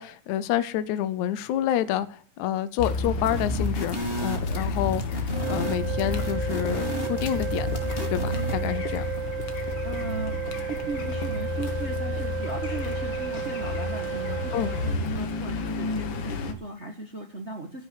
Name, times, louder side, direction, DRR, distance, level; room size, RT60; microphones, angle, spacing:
voice 1, 0.0-7.7 8.1-9.0 14.5-14.7, left 12 dB, 75° left, 13 dB, 2.1 m, -28 dB
Car, 2.8-16.5, left 3 dB, 55° left, 1.5 m, -31 dB
sound 1, 3.2-8.7, left 1 dB, 20° left, 2.2 m, -32 dB
sound 2, 5.3-15.0, right 9 dB, 80° right, 2.5 m, -33 dB
voice 2, 9.8-17.9, right 2 dB, 60° right, 2 dB, 0.7 m, -37 dB
15.0 x 5.5 x 8.0 m, 0.43 s
omnidirectional pair, 3.6 m